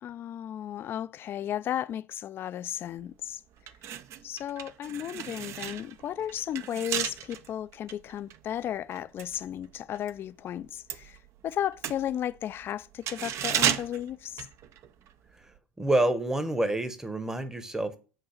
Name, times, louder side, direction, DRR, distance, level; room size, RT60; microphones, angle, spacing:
voice 1, 0.0-3.4 4.2-11.2 11.4-14.5, left 10 dB, 35° left, 0.4 m, -34 dB
sound 1, 3.0-3.1 3.6-10.2 10.5-15.1 15.4-15.6, right 10 dB, 45° right, 0.6 m, -34 dB
voice 2, 15.8-18.0, right 1 dB, 10° right, 0.9 m, -27 dB
7.8 x 2.7 x 5.8 m
hypercardioid pair, 95°, 7 cm